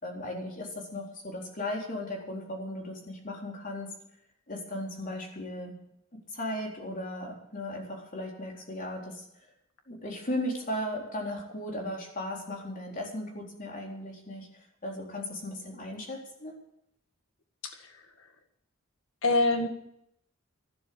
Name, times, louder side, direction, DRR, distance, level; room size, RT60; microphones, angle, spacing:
voice 1, 0.0-3.9 4.5-5.8 6.3-9.2 9.9-14.5 14.8-16.5, left 1 dB, 45° left, 0 dB, 4.0 m, -36 dB
voice 2, 17.6-18.3 19.2-19.7, left 2 dB, 75° left, 5 dB, 1.8 m, -27 dB
13.0 x 12.0 x 7.0 m, 0.76 s
head